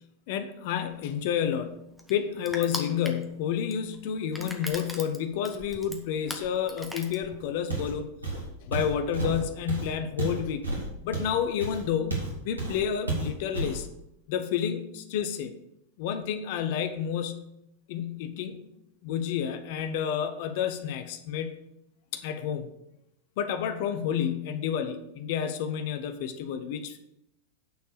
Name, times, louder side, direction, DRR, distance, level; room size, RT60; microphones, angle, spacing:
voice 1, 0.3-1.8 2.1-8.1 8.7-10.6 11.0-13.9 14.3-15.5 16.0-17.4 17.9-18.6 19.0-21.5 22.1-22.7 23.4-27.0, left 8 dB, 50° left, 9 dB, 0.8 m, -30 dB
Crushing, 0.9-7.7, equal, ahead, 1.2 m, -41 dB
Walk footsteps, 7.7-8.0 8.2-12.3 12.6-12.8 13.1-13.8, right 2 dB, 80° right, 2.2 m, -31 dB
9.2 x 4.5 x 6.8 m, 0.82 s
figure-of-eight pair, 90°, 0 cm